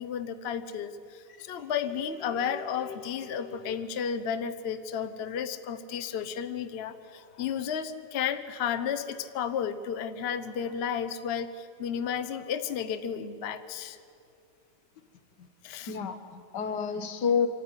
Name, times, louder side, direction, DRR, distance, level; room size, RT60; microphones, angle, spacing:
voice 1, 0.0-14.0 15.6-15.9, left 8 dB, 50° left, 9 dB, 0.8 m, -33 dB
voice 2, 2.3-3.8 15.4-15.5 15.9-17.5, left 6 dB, 75° left, 9 dB, 1.7 m, -32 dB
25.0 x 13.5 x 9.6 m, 2.5 s
omnidirectional pair, 1.9 m